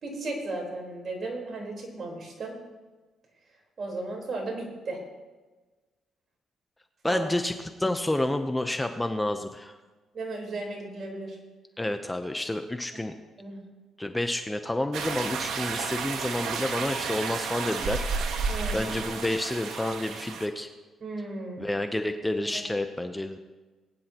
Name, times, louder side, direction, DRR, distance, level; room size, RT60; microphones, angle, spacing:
voice 1, 0.0-2.6 3.8-5.0 7.0-7.3 10.1-11.4 13.4-13.6 18.5-18.8 21.0-21.6 22.5-22.6, right 2 dB, 45° right, -1 dB, 4.2 m, -35 dB
voice 2, 7.0-9.8 11.8-13.1 14.0-18.0 18.7-20.7 21.6-23.4, left 1 dB, 10° left, 7 dB, 0.7 m, -29 dB
sound 1, 14.9-20.5, right 5 dB, 80° right, 1.3 m, -32 dB
20.0 x 9.9 x 3.0 m, 1.3 s
cardioid pair, 90°, 0 cm